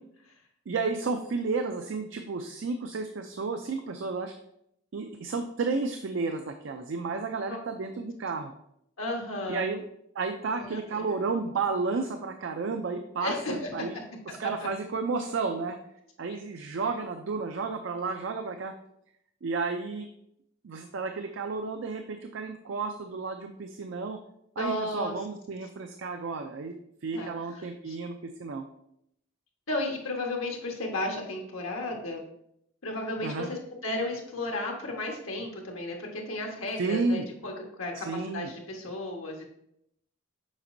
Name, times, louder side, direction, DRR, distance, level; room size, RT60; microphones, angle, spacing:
voice 1, 0.7-4.3 4.9-8.5 9.5-9.8 10.1-13.9 14.3-15.8 16.2-18.7 19.4-20.1 20.6-24.2 24.6-26.8 27.0-28.7 33.2-33.5 36.8-37.2 38.0-38.5, right 4 dB, 65° right, 7 dB, 0.4 m, -32 dB
voice 2, 9.0-9.7 10.5-11.2 13.2-13.7 24.6-25.1 27.1-28.0 29.7-32.2 32.8-39.5, left 1 dB, 80° left, 1 dB, 1.3 m, -34 dB
7.2 x 5.1 x 2.6 m, 0.76 s
head